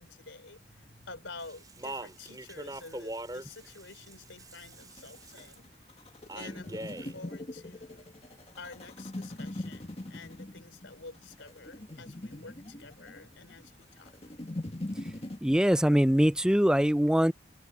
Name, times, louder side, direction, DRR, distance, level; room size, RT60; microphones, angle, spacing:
voice 1, 0.0-5.7 6.3-8.0 8.6-14.2, left 3 dB, 85° left, 3.9 m, -49 dB
Speech, 1.4-5.6 6.3-7.1, right 1 dB, 20° right, 7.0 m, -42 dB
sound 1, 4.7-15.4, left 1 dB, 30° left, 1.8 m, -42 dB
voice 2, 15.4-17.3, equal, 5° right, 0.5 m, -23 dB
head